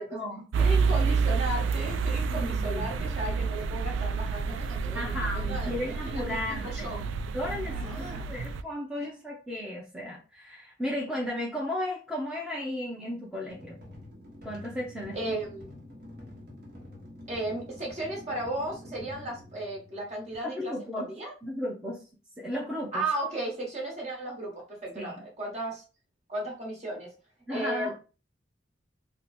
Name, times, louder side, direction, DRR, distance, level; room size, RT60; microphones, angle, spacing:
voice 1, 0.0-0.8 2.3-3.1 4.9-13.8 14.4-15.4 20.4-21.1 21.4-22.0 22.4-23.0 25.0-25.2 27.5-27.9, left 1 dB, 5° right, -3 dB, 0.5 m, -35 dB
sound 1, 0.5-8.6, right 5 dB, 90° right, 0.3 m, -29 dB
voice 2, 0.6-7.0 7.7-8.4 15.1-15.7 17.3-21.3 22.9-25.8 26.3-27.1 27.5-28.0, right 1 dB, 35° right, -2 dB, 1.4 m, -35 dB
sound 2, 13.5-20.3, left 1 dB, 55° right, 1.2 m, -47 dB
2.8 x 2.2 x 4.1 m, 0.34 s
head